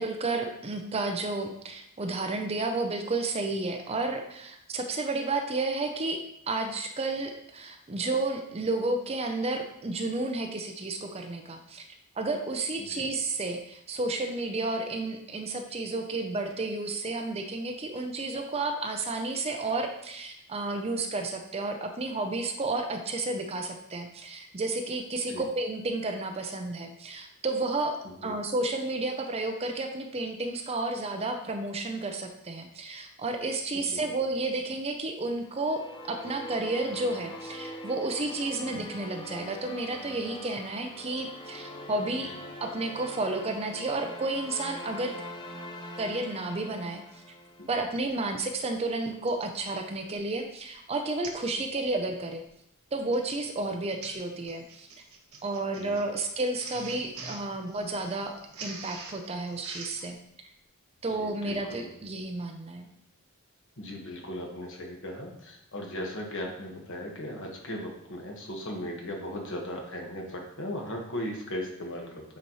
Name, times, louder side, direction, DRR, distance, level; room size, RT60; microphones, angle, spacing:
voice 1, 0.0-6.2 6.5-11.8 12.2-35.8 36.1-42.3 42.6-45.1 46.0-47.0 47.7-52.4 52.9-54.9 55.4-60.2 61.0-62.9, right 2 dB, 30° right, 5 dB, 0.5 m, -31 dB
sound 1, 35.5-47.8, left 1 dB, 20° left, 0.5 m, -43 dB
Printer, 49.3-49.5 50.1-50.4 50.6-50.7 51.2-51.5 51.8-52.1 52.9-60.1, right 4 dB, 75° right, 1.0 m, -45 dB
voice 2, 61.1-61.9 63.8-72.2, left 1 dB, 60° left, 0 dB, 1.4 m, -37 dB
8.4 x 4.1 x 3.1 m, 0.75 s
head